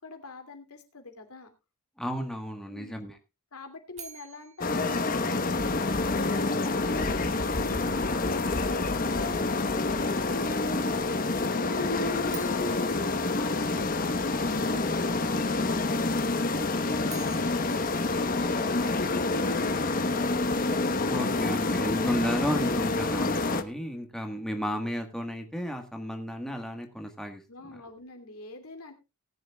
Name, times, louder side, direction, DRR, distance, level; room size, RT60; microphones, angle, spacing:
voice 1, 0.0-1.5 2.7-3.0 3.5-17.7 17.9-20.5 21.3-22.1 27.5-28.9, left 3 dB, 80° left, 6 dB, 2.6 m, -47 dB
voice 2, 2.0-3.2 21.1-27.4, equal, 5° left, 4 dB, 1.5 m, -33 dB
sound 1, 3.9-6.1 12.3-14.4 16.8-19.2, right 6 dB, 30° right, 2.1 m, -50 dB
sound 2, 4.6-23.6, left 3 dB, 40° left, 1.0 m, -27 dB
19.0 x 10.5 x 2.3 m, 0.26 s
head